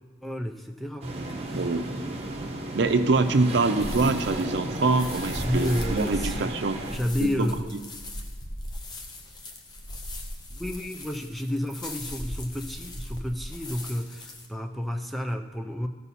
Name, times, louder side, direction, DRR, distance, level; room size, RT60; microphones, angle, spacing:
voice 1, 0.2-1.7 5.4-6.5 6.9-7.8 10.5-15.9, equal, ahead, 3 dB, 0.4 m, -31 dB
sound 1, 1.0-7.0, right 2 dB, 35° right, 1.0 m, -34 dB
voice 2, 1.5-1.8 2.7-6.8 7.2-7.5, right 3 dB, 75° right, 8 dB, 0.6 m, -24 dB
sound 2, 3.8-14.5, left 1 dB, 25° left, 0.7 m, -38 dB
14.0 x 5.4 x 4.2 m, 1.5 s
head